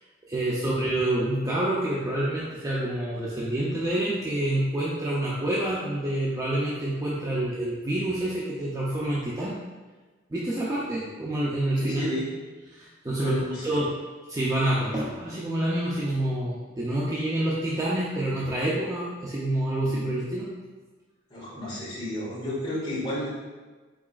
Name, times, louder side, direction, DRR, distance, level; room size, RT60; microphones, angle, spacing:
voice 1, 0.3-9.5 10.3-12.1 12.7-13.4 13.6-13.9 14.3-20.5, right 1 dB, 20° right, -7 dB, 0.5 m, -27 dB
voice 2, 11.8-12.3 13.2-13.8 19.8-20.0 21.3-23.3, left 1 dB, 25° left, -7 dB, 1.5 m, -32 dB
4.8 x 4.1 x 2.4 m, 1.3 s
head